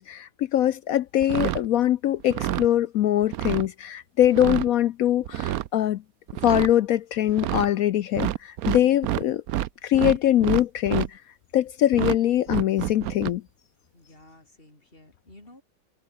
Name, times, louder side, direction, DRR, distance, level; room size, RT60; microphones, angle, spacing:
voice 1, 0.0-6.0 6.4-9.4 9.8-11.2 11.5-13.4, left 12 dB, 75° left, 0.8 m, -22 dB
sound 1, 1.2-1.7 2.2-2.7 3.2-3.7 4.2-4.7 5.2-5.7 6.3-6.7 7.3-7.7 8.2-9.7 9.9-11.1 11.9-12.2 12.5-13.3, right 13 dB, 70° right, 0.9 m, -28 dB
voice 2, 13.9-15.6, left 1 dB, 30° left, 6.4 m, -52 dB
omnidirectional pair, 2.0 m